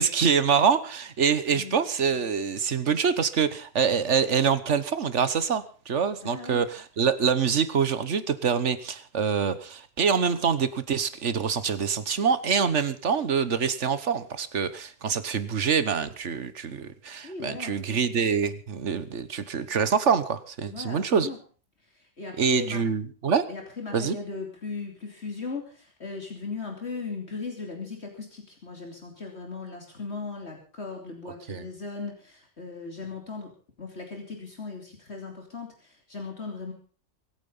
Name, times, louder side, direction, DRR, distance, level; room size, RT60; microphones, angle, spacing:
voice 1, 0.0-21.3 22.4-23.4 23.9-24.1 31.5-31.6, right 6 dB, 70° right, 13 dB, 1.5 m, -25 dB
voice 2, 6.2-6.6 17.2-18.0 20.7-21.4 21.8-22.8 23.5-33.5 33.8-36.7, left 4 dB, 60° left, 2 dB, 3.3 m, -38 dB
24.0 x 9.0 x 5.5 m, 0.40 s
omnidirectional pair, 1.2 m